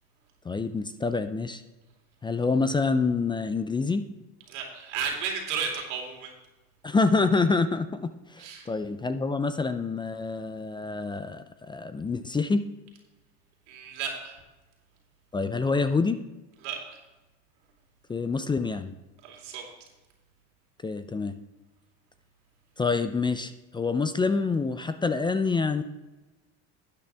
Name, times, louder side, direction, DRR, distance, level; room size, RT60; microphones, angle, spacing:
voice 1, 0.4-1.6 2.2-4.1 6.8-12.7 15.3-16.2 18.1-18.9 20.8-21.4 22.8-25.8, left 4 dB, 15° left, 10 dB, 0.4 m, -27 dB
voice 2, 4.5-6.3 8.4-8.7 13.7-14.3 16.6-16.8 19.2-19.7, right 6 dB, 90° right, 1 dB, 2.8 m, -33 dB
12.0 x 8.6 x 3.4 m, 1.1 s
supercardioid pair, 110°, 35 cm